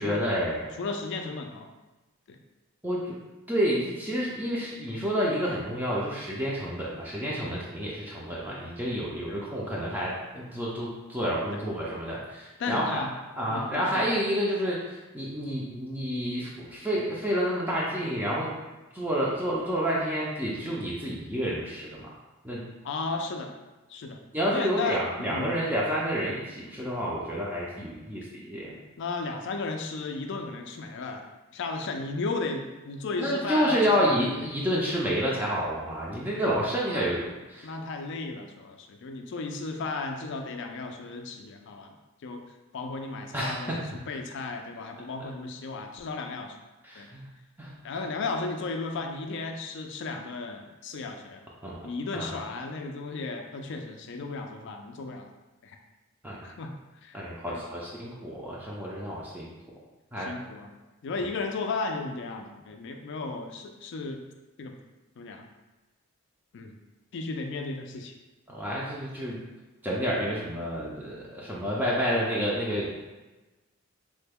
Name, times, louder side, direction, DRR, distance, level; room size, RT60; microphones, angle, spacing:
voice 1, 0.0-0.7 2.8-3.2 3.5-13.0 13.4-18.5 18.9-22.1 22.4-22.6 24.3-28.8 33.2-37.7 43.3-43.8 46.8-47.2 47.6-47.8 51.6-51.8 52.1-52.4 56.2-56.4 57.1-59.5 60.1-60.3 68.5-69.4 69.8-73.0, equal, 10° right, -6 dB, 0.4 m, -29 dB
voice 2, 0.8-1.7 2.3-2.4 9.3-9.4 11.5-11.7 12.6-13.1 13.5-14.1 22.8-23.6 23.9-24.2 24.5-25.5 29.0-31.2 31.5-34.1 37.6-41.9 42.2-42.4 42.7-46.6 47.0-47.1 47.8-51.4 51.8-55.3 55.6-55.8 56.4-56.7 57.0-57.6 60.2-60.7 61.0-64.2 64.6-64.8 65.2-65.5 66.5-66.8 67.1-68.1, left 3 dB, 55° left, 4 dB, 0.3 m, -34 dB
3.2 x 2.2 x 3.4 m, 1.1 s
head